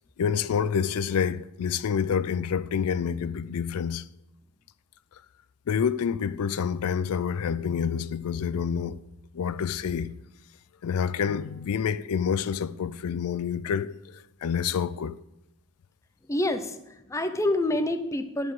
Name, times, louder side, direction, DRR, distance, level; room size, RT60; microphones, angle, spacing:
voice 1, 0.2-4.1 5.7-9.0 9.3-10.1 10.8-15.2, left 7 dB, 85° left, 0.4 m, -28 dB
voice 2, 16.3-18.5, left 1 dB, 15° left, 0.7 m, -27 dB
11.0 x 4.9 x 7.8 m
head